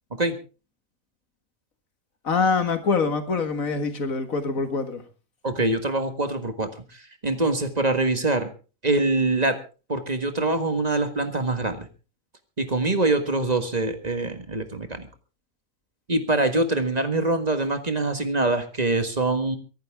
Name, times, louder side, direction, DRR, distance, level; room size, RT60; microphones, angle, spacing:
voice 1, 2.2-5.0, left 4 dB, 70° left, 2.2 m, -24 dB
voice 2, 5.4-8.5 8.8-9.6 9.9-11.9 12.6-15.1 16.1-19.6, right 2 dB, 30° right, 1.7 m, -24 dB
23.5 x 11.5 x 3.6 m
omnidirectional pair, 1.5 m